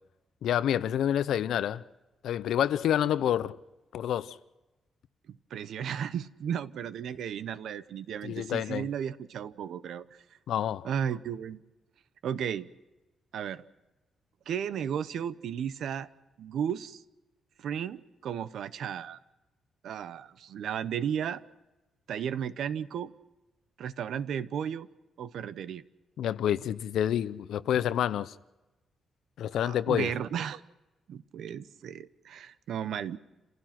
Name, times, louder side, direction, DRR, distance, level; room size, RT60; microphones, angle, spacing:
voice 1, 0.4-1.8 2.2-3.6 3.9-4.4 8.2-8.9 10.5-10.9 26.2-28.3 29.4-30.1, left 10 dB, 80° left, 0.7 m, -28 dB
voice 2, 5.3-10.0 10.8-11.6 12.2-12.7 13.3-13.6 14.5-16.1 16.4-17.0 17.6-19.2 19.8-21.4 22.1-23.1 23.8-24.9 25.2-25.8 29.6-30.6 31.1-33.2, right 8 dB, 70° right, 0.8 m, -34 dB
29.0 x 16.0 x 5.9 m
wide cardioid pair, 170°, 0 cm